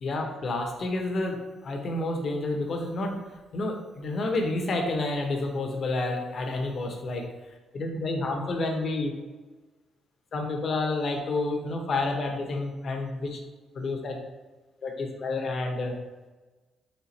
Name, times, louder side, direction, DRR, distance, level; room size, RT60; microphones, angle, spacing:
voice 1, 0.0-3.2 3.5-7.3 7.7-9.1 10.3-13.4 13.7-14.2 14.8-16.0, left 2 dB, 50° left, 2 dB, 0.9 m, -29 dB
4.3 x 2.4 x 4.1 m, 1.2 s
cardioid pair, 90°, 0 cm